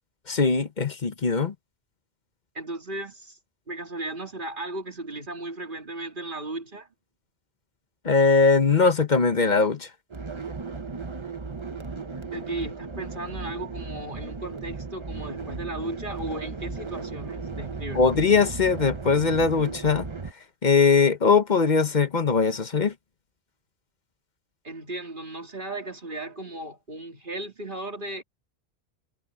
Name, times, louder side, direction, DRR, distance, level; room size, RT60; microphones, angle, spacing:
voice 1, 0.3-1.5 8.0-9.9 17.9-20.1 20.6-22.9, left 4 dB, 45° left, 1.1 m, -21 dB
voice 2, 2.5-3.4 3.7-6.9 12.3-18.1 24.6-28.2, right 2 dB, 50° right, 3.1 m, -36 dB
sound 1, 10.1-20.3, right 4 dB, 30° right, 0.9 m, -36 dB
omnidirectional pair, 1.1 m